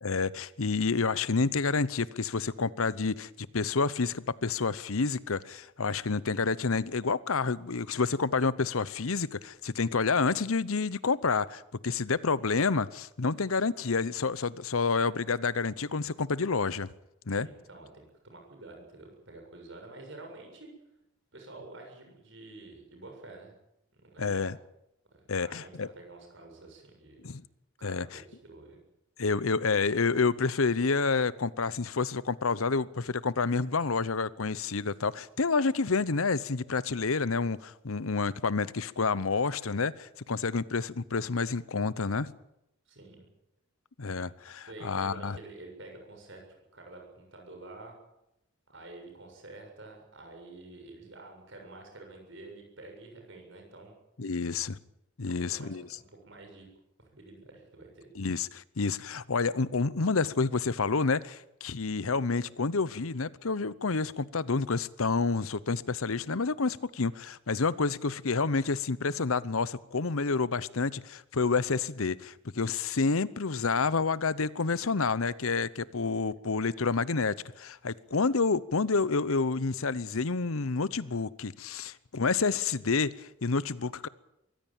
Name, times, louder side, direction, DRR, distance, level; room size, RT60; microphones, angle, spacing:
voice 1, 0.0-16.9 17.3-17.5 24.2-24.6 25.3-25.9 27.2-27.4 27.8-28.2 29.2-42.3 44.0-45.4 54.2-54.8 55.2-55.9 58.2-84.1, left 4 dB, 75° left, 18 dB, 0.9 m, -29 dB
voice 2, 17.3-20.7 21.3-23.5 23.9-24.5 25.3-27.2 27.8-28.8 42.9-43.3 44.7-46.4 46.7-47.9 48.7-53.9 55.3-55.8 56.2-56.7 57.1-58.1 67.7-67.8 75.9-76.2, right 2 dB, 60° right, 2 dB, 7.4 m, -48 dB
23.0 x 16.0 x 8.9 m, 0.84 s
head